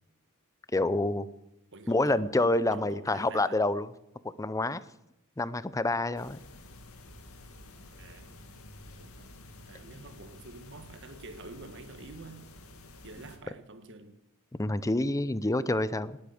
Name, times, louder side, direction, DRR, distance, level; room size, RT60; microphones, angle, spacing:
voice 1, 0.7-1.3 1.9-3.9 4.4-4.8 5.4-6.4 14.6-16.2, left 2 dB, 15° left, 0.6 m, -27 dB
voice 2, 1.7-2.3 2.7-3.6 8.0-8.6 9.0-9.4 9.7-12.4 13.0-14.2, right 3 dB, 60° right, 1.6 m, -48 dB
sound 1, 6.2-13.4, left 2 dB, 90° left, 2.2 m, -50 dB
19.0 x 8.5 x 7.8 m
head